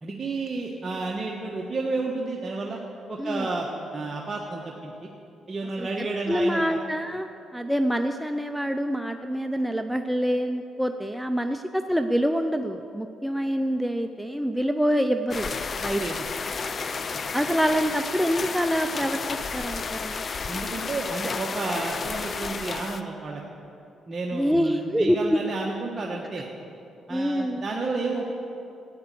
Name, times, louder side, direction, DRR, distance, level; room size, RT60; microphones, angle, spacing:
voice 1, 0.0-2.8 3.1-5.1 5.5-6.8 16.0-16.3 17.1-17.2 20.5-23.4 24.1-26.5 27.1-28.3, right 3 dB, 30° right, -2 dB, 1.3 m, -31 dB
voice 2, 5.8-7.3 7.5-16.0 17.3-20.2 24.3-25.4 27.1-27.7, equal, ahead, 6 dB, 0.6 m, -26 dB
sound 1, 15.3-23.0, left 5 dB, 40° left, 0.6 m, -32 dB
13.0 x 9.4 x 7.7 m, 2.7 s
cardioid pair, 90°, 0 cm